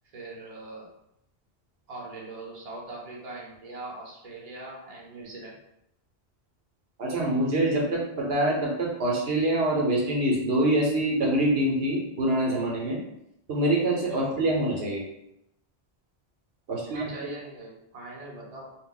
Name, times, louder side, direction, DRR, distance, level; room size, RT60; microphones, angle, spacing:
voice 1, 0.1-0.9 1.9-5.5 14.1-14.3 16.7-18.7, right 2 dB, 40° right, -4 dB, 0.7 m, -41 dB
voice 2, 7.0-13.0 13.5-15.0 16.7-17.1, right 1 dB, 70° right, -3 dB, 0.9 m, -25 dB
2.3 x 2.1 x 3.7 m, 0.81 s
omnidirectional pair, 1.1 m